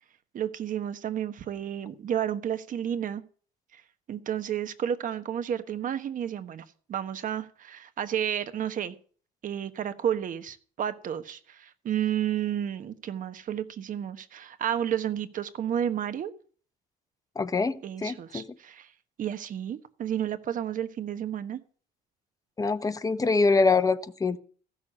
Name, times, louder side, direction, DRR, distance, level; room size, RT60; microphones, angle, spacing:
voice 1, 0.3-3.2 3.7-3.8 4.1-9.0 9.4-16.3 17.8-18.9 19.2-21.6, right 9 dB, 50° right, 1.3 m, -31 dB
voice 2, 17.4-18.4 22.6-24.4, left 4 dB, 20° left, 1.0 m, -24 dB
15.0 x 6.7 x 8.7 m
cardioid pair, 110°, 17 cm